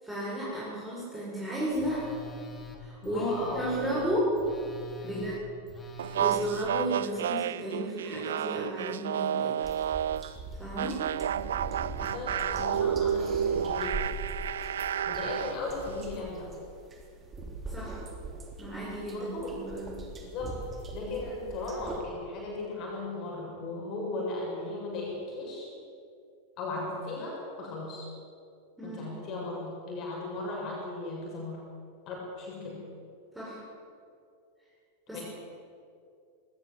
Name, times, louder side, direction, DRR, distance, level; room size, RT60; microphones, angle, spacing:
voice 1, 0.0-2.1 2.8-4.3 5.0-5.3 6.2-9.5 10.6-11.0 17.7-18.0 18.6-19.9 28.8-29.1 33.3-33.6 35.1-35.2, right 1 dB, 5° right, -8 dB, 7.5 m, -33 dB
Telephone, 1.7-6.7, left 2 dB, 15° left, 3.0 m, -45 dB
voice 2, 3.0-4.0 5.0-5.3 12.0-14.1 15.1-16.6 19.1-19.6 20.1-20.5 20.9-25.7 26.6-28.1 28.8-31.6 32.1-32.8 35.1-35.2, left 2 dB, 35° left, -2 dB, 7.0 m, -37 dB
sound 1, 6.0-10.3 10.8-15.6, right 9 dB, 60° right, 0.5 m, -31 dB
sound 2, 9.6-22.0, right 2 dB, 20° right, 3.4 m, -42 dB
20.5 x 18.0 x 8.3 m, 2.4 s
figure-of-eight pair, 90°, 0 cm